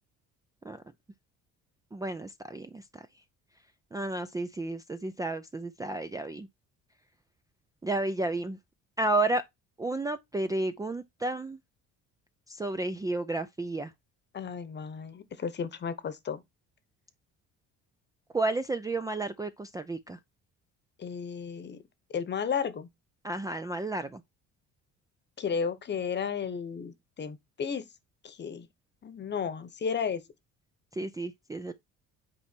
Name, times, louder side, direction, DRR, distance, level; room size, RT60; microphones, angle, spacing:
voice 1, 1.9-3.1 3.9-6.5 7.8-8.6 9.0-9.4 9.8-11.6 12.5-13.9 18.3-20.2 23.2-24.2 30.9-31.7, right 2 dB, 10° right, 0.4 m, -32 dB
voice 2, 14.3-16.4 21.0-21.8 22.1-22.9 25.4-27.8 28.2-28.7 29.0-30.2, left 6 dB, 35° left, 1.0 m, -33 dB
8.7 x 4.6 x 4.4 m
cardioid pair, 125°, 32 cm